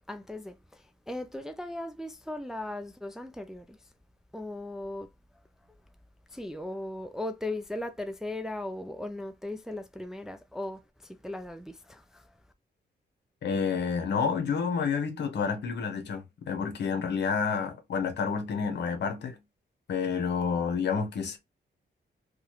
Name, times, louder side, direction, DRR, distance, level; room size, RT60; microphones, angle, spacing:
voice 1, 0.1-3.8 4.3-5.1 6.3-12.3, left 1 dB, 5° right, 0.3 m, -38 dB
voice 2, 13.4-19.4 19.9-21.4, left 6 dB, 70° left, 0.9 m, -29 dB
3.0 x 2.4 x 2.9 m
wide cardioid pair, 125°, 18 cm